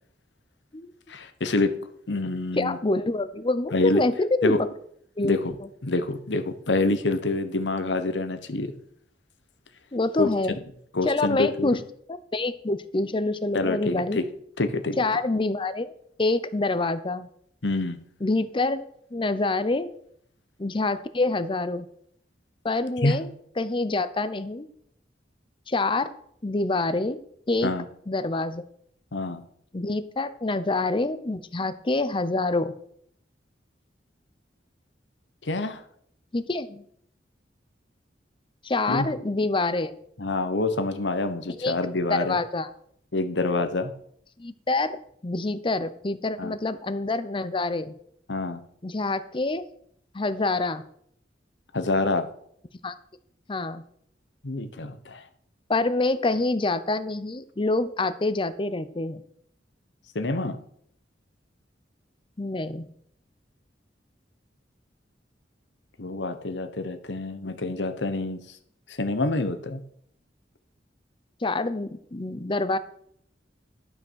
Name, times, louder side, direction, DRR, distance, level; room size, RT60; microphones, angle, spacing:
voice 1, 1.1-1.8 2.1-2.8 3.7-4.0 4.4-4.6 5.2-5.5 5.8-8.7 10.2-10.3 10.9-11.8 13.5-14.3 14.6-15.0 17.6-18.0 23.0-23.2 27.6-27.9 29.1-29.4 35.4-35.8 38.9-39.1 40.2-42.4 43.1-43.9 46.4-46.5 48.3-48.6 51.7-52.3 54.4-55.2 60.1-60.6 66.0-68.4 68.9-69.8, left 2 dB, 85° left, 9 dB, 1.1 m, -26 dB
voice 2, 2.5-4.6 5.2-5.4 9.9-10.6 11.0-11.8 12.1-14.2 15.0-15.9 16.2-17.3 18.2-18.8 19.1-19.9 20.6-21.9 22.6-23.3 23.6-24.7 25.7-26.1 26.4-27.2 27.5-27.7 28.1-28.6 29.7-32.7 36.3-36.8 38.6-39.9 41.6-41.8 42.1-42.7 44.4-47.9 48.8-49.7 50.1-50.8 52.8-52.9 53.5-53.8 55.7-59.2 62.4-62.9 71.4-72.8, left 2 dB, 30° left, 13 dB, 0.7 m, -26 dB
11.5 x 6.1 x 6.3 m, 0.67 s
head